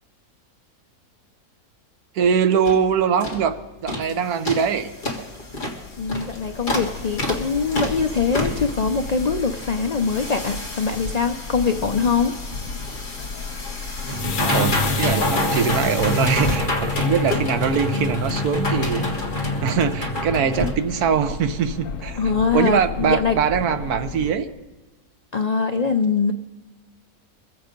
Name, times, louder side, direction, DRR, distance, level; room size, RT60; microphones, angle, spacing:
voice 1, 2.1-3.6 3.8-4.9 14.1-19.1 19.6-22.2 22.5-24.5, right 7 dB, 85° right, 10 dB, 1.4 m, -22 dB
sound 1, 2.2-2.3 2.6-2.8 3.2-3.4 3.9-4.1 4.4-20.7, left 1 dB, 35° left, 2.0 m, -27 dB
sound 2, 5.8-24.3, left 5 dB, 65° left, 1.2 m, -34 dB
voice 2, 6.0-12.4 22.2-23.4 25.3-26.3, left 5 dB, 90° left, 7 dB, 0.3 m, -22 dB
23.5 x 7.9 x 5.2 m, 1.2 s
omnidirectional pair, 1.6 m